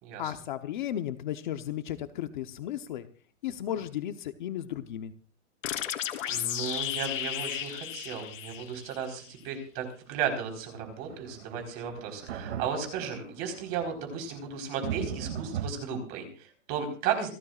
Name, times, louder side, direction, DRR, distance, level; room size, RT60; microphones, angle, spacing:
voice 1, 0.2-3.1 3.4-5.1, left 11 dB, 40° left, 8 dB, 1.0 m, -34 dB
sound 1, 5.6-9.1, left 11 dB, 90° left, 3.6 m, -34 dB
voice 2, 6.3-17.3, right 7 dB, 25° right, 4 dB, 4.4 m, -34 dB
sound 2, 10.8-15.7, right 8 dB, 70° right, 2.5 m, -39 dB
28.5 x 12.5 x 2.5 m, 0.40 s
supercardioid pair, 180°, 37 cm